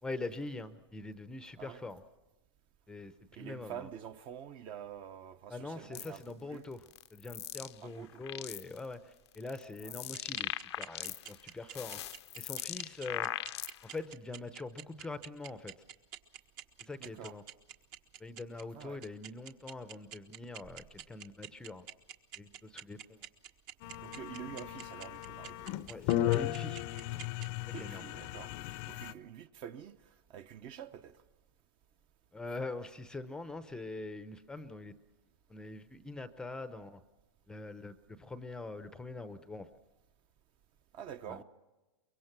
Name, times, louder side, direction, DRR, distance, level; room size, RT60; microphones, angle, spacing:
voice 1, 0.0-2.0 2.9-3.9 5.5-12.0 12.3-13.3 13.8-15.8 16.8-17.4 18.2-21.9 22.3-23.2 25.9-26.8 27.8-28.0 32.3-35.0 35.5-37.0 37.5-39.7 41.3-41.4, left 2 dB, 5° left, 0.7 m, -43 dB
voice 2, 3.3-6.6 7.8-8.2 9.8-9.9 17.0-17.3 18.7-19.0 24.0-25.7 27.7-28.5 28.9-30.0 30.3-31.2 40.9-41.4, right 9 dB, 35° right, 0.9 m, -47 dB
sound 1, 5.9-6.2 6.9-7.7 8.1-8.8 9.3-11.4 11.7-14.0, left 13 dB, 75° left, 0.7 m, -40 dB
sound 2, 10.1-27.5, right 10 dB, 50° right, 1.5 m, -46 dB
sound 3, 23.8-29.1, left 14 dB, 40° left, 0.7 m, -35 dB
24.0 x 23.0 x 6.0 m
supercardioid pair, 145°, 14 cm